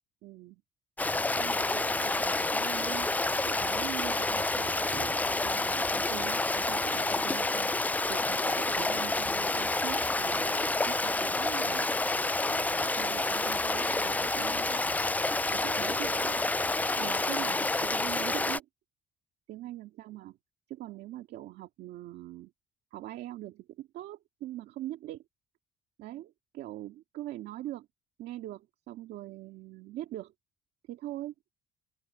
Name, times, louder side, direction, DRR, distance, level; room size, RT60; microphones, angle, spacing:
voice 1, 0.2-0.6 1.4-3.1 3.4-15.0 15.5-16.4 17.0-18.7 19.5-20.4 20.7-22.5 22.9-25.2 26.0-27.9 28.2-30.3 30.9-31.3, right 14 dB, 75° right, 2.1 m, -42 dB
Stream, 1.0-18.6, left 2 dB, 10° left, 0.4 m, -29 dB
open air
cardioid pair, 110°, 17 cm